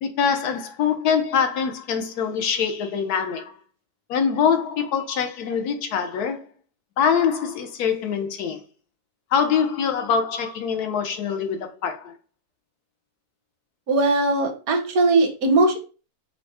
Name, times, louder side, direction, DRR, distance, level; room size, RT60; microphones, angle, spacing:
voice 1, 0.0-3.6 4.1-6.4 7.0-8.6 9.3-12.1, left 7 dB, 85° left, 1.2 m, -24 dB
voice 2, 13.9-15.8, right 2 dB, 70° right, 1.3 m, -19 dB
4.5 x 2.1 x 4.1 m
omnidirectional pair, 1.6 m